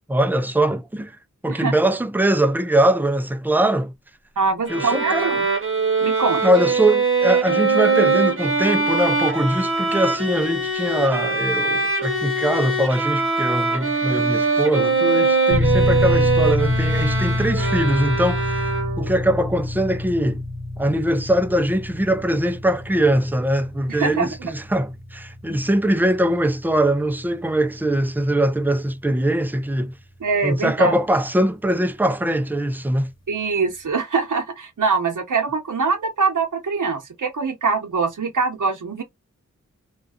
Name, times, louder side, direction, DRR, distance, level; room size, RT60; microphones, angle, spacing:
voice 1, 0.1-1.2 1.4-3.9 4.7-5.4 6.4-18.7 19.0-20.4 20.8-29.9 30.4-33.1, right 1 dB, 5° right, 0.4 m, -22 dB
voice 2, 4.4-5.4 6.0-6.4 23.9-24.3 30.2-30.9 33.3-39.0, right 4 dB, 80° right, 0.8 m, -23 dB
Bowed string instrument, 4.7-19.2, right 3 dB, 45° right, 0.8 m, -22 dB
sound 1, 15.5-29.9, left 2 dB, 60° left, 0.8 m, -27 dB
2.4 x 2.2 x 2.3 m
wide cardioid pair, 40°, 30 cm